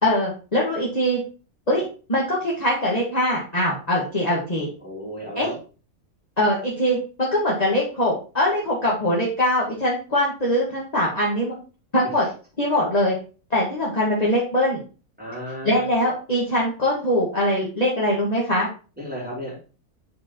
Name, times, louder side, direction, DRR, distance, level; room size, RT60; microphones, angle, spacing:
voice 1, 0.0-1.2 1.7-4.7 5.4-5.5 6.4-11.5 11.9-12.2 12.6-13.1 13.5-14.8 15.6-18.7, left 1 dB, 25° left, -6 dB, 1.5 m, -22 dB
voice 2, 4.8-5.6 15.2-15.9 19.0-19.6, equal, 5° right, -5 dB, 2.8 m, -33 dB
7.5 x 4.7 x 2.9 m, 0.36 s
omnidirectional pair, 1.6 m